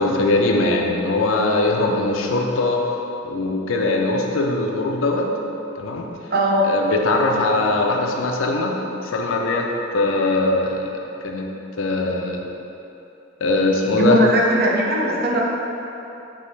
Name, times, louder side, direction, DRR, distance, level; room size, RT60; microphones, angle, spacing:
voice 1, 0.0-2.8 3.2-5.3 5.8-6.1 6.6-8.8 9.0-10.9 11.2-11.5 11.8-12.5 13.4-14.2, left 2 dB, 80° left, 1 dB, 0.5 m, -21 dB
voice 2, 6.3-6.6 13.9-15.4, right 1 dB, 50° right, -2 dB, 0.6 m, -19 dB
5.4 x 2.8 x 3.2 m, 3.0 s
head